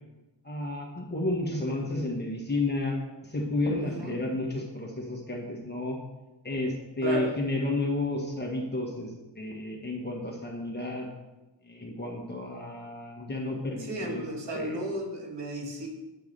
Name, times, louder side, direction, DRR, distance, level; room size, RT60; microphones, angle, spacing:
voice 1, 0.4-3.0 3.3-6.0 6.4-9.1 9.4-11.1 11.7-14.2 14.5-14.8, left 2 dB, 20° left, -1 dB, 1.6 m, -31 dB
voice 2, 3.7-4.2 7.0-7.3 13.8-15.9, right 1 dB, 65° right, -1 dB, 2.0 m, -34 dB
9.3 x 4.6 x 6.8 m, 1.1 s
wide cardioid pair, 165°, 45 cm